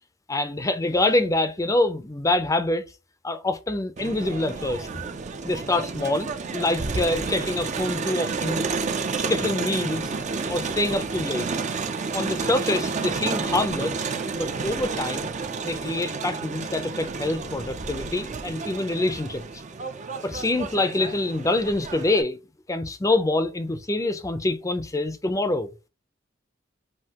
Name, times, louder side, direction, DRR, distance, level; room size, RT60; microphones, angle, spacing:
voice 1, 0.3-2.8 3.2-4.9 5.4-8.6 9.1-10.1 10.5-11.5 12.1-15.3 15.6-19.4 20.2-22.4 22.7-25.7, left 2 dB, 15° left, 0.6 m, -25 dB
Crowd, 4.0-22.2, right 4 dB, 40° right, 0.5 m, -30 dB
5.7 x 2.7 x 2.9 m
head